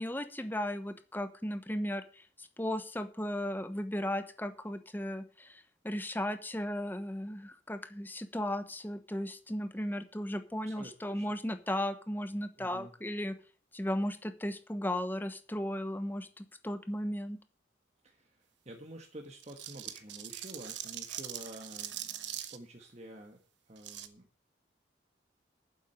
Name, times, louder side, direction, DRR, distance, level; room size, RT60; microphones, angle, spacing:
voice 1, 0.0-2.0 2.4-13.3 13.7-17.4, left 1 dB, 10° left, 10 dB, 1.0 m, -36 dB
voice 2, 10.6-11.4 12.6-12.9 18.0-23.4 23.7-24.3, right 1 dB, 35° right, 3 dB, 1.4 m, -49 dB
sound 1, 19.4-22.6 23.8-24.1, right 11 dB, 75° right, 1.2 m, -42 dB
9.0 x 7.5 x 8.8 m, 0.40 s
head